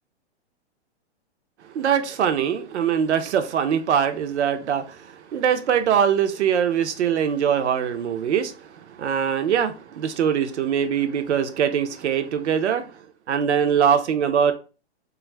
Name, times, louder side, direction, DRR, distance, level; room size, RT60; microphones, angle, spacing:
voice 1, 1.7-5.0 5.3-8.5 9.0-12.9 13.3-14.5, right 8 dB, 85° right, 0.5 m, -22 dB
2.5 x 2.4 x 3.2 m
hypercardioid pair, 125°, 34 cm